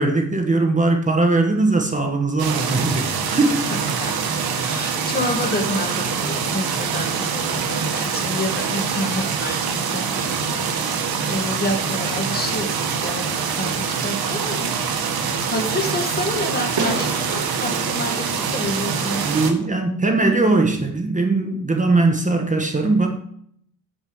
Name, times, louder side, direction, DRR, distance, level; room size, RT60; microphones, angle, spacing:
voice 1, 0.0-3.6 19.2-23.1, right 2 dB, 20° right, 4 dB, 1.3 m, -20 dB
sound 1, 2.4-19.5, right 6 dB, 75° right, 1.5 m, -24 dB
voice 2, 3.7-4.1 4.6-11.0 11.3-14.7 15.0-19.3, left 1 dB, 25° left, 5 dB, 1.6 m, -29 dB
Fireworks, 11.8-19.7, right 4 dB, 55° right, 2.1 m, -35 dB
8.0 x 7.2 x 4.7 m, 0.66 s
cardioid pair, 95°, 37 cm